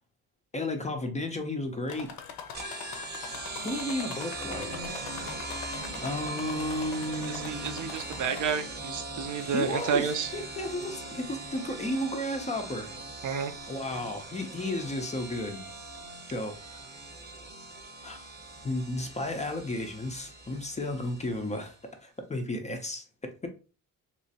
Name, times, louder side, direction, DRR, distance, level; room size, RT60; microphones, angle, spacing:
voice 1, 0.5-2.1 3.6-4.7 6.0-8.0 9.4-12.9 13.7-15.6 16.3-16.8 18.0-18.3 18.6-23.5, left 1 dB, 20° left, 0.4 m, -33 dB
sound 1, 1.9-8.9 9.4-10.0 10.8-10.9 11.3-11.4, left 7 dB, 70° left, 0.6 m, -43 dB
sound 2, 2.5-21.7, right 2 dB, 25° right, 0.7 m, -40 dB
voice 2, 7.3-10.3 13.2-13.5, right 7 dB, 55° right, 0.5 m, -30 dB
3.1 x 3.0 x 2.7 m
cardioid pair, 130°, 37 cm